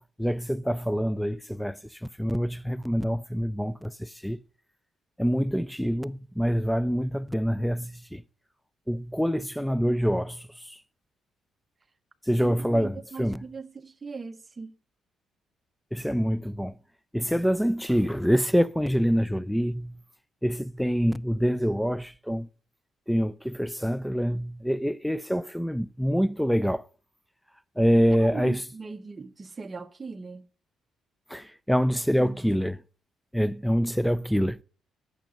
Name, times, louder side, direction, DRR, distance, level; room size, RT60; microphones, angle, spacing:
voice 1, 0.2-1.8 2.2-4.4 5.2-8.2 8.9-10.4 12.3-13.4 15.9-16.7 17.1-19.9 20.4-22.5 23.1-26.8 27.8-28.6 31.3-32.8 33.3-34.6, equal, ahead, 0.4 m, -25 dB
voice 2, 12.4-14.7 28.1-30.4 32.2-32.6, right 4 dB, 25° right, 0.9 m, -39 dB
9.1 x 6.7 x 5.1 m
cardioid pair, 90°, 0 cm